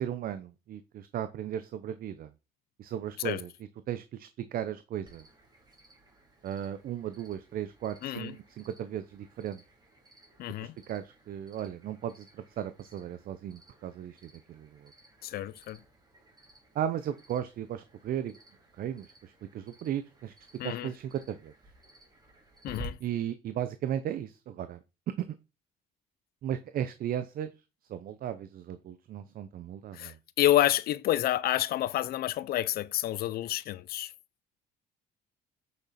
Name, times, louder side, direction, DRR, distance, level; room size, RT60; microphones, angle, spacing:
voice 1, 0.0-2.3 2.8-3.5 3.9-5.2 6.4-9.6 10.6-14.9 16.7-18.4 18.8-20.3 20.6-21.5 23.0-24.8 26.4-27.5 27.9-30.2, right 10 dB, 60° right, 0.8 m, -36 dB
Cricket, 5.0-22.8, right 2 dB, 25° right, 3.4 m, -55 dB
voice 2, 10.4-10.7 15.2-15.8 20.6-20.9 22.6-23.0 29.9-34.1, left 13 dB, 65° left, 0.5 m, -29 dB
8.7 x 6.3 x 4.3 m
cardioid pair, 110°, 17 cm